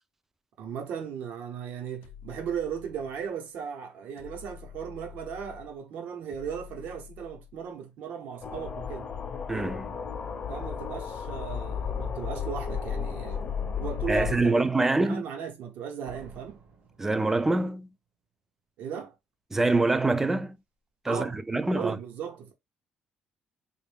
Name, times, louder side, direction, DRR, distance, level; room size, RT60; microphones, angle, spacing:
voice 1, 0.6-9.1 10.5-16.6 18.8-19.1 21.1-22.5, right 7 dB, 75° right, 1.1 m, -37 dB
sound 1, 2.0-3.3 4.2-5.8 6.3-7.7 8.4-10.1 10.6-12.0 12.7-14.3, left 10 dB, 85° left, 0.5 m, -48 dB
sound 2, 8.4-14.4, left 7 dB, 35° left, 0.6 m, -34 dB
voice 2, 9.5-9.9 14.1-15.2 17.0-17.9 19.5-20.6 21.0-22.0, right 2 dB, 10° right, 0.3 m, -25 dB
Slam, 16.1-18.0, right 4 dB, 55° right, 0.9 m, -52 dB
3.5 x 2.5 x 3.4 m
cardioid pair, 135°, 3 cm